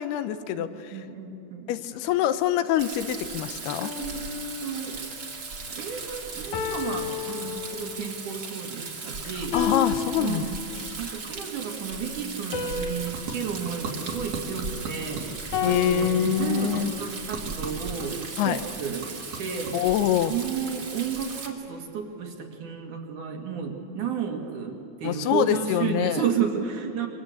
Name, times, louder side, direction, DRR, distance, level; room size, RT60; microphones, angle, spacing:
voice 1, 0.0-0.9 1.7-3.9 9.5-10.5 15.6-16.9 18.4-18.6 19.7-20.3 25.0-26.2, left 12 dB, 85° left, 12 dB, 2.8 m, -25 dB
voice 2, 0.5-1.7 4.0-4.2 4.6-5.0 5.6-9.6 10.2-10.6 11.0-19.8 20.2-27.1, right 7 dB, 60° right, 3 dB, 3.0 m, -32 dB
Rain, 2.8-21.5, right 4 dB, 35° right, 2.5 m, -37 dB
sound 1, 3.8-5.1 6.5-8.1 9.5-11.0 12.5-14.9 15.5-16.8, left 4 dB, 55° left, 2.6 m, -33 dB
sound 2, 12.2-21.6, right 3 dB, 75° right, 4.5 m, -41 dB
26.5 x 24.0 x 8.2 m, 2.9 s
omnidirectional pair, 4.5 m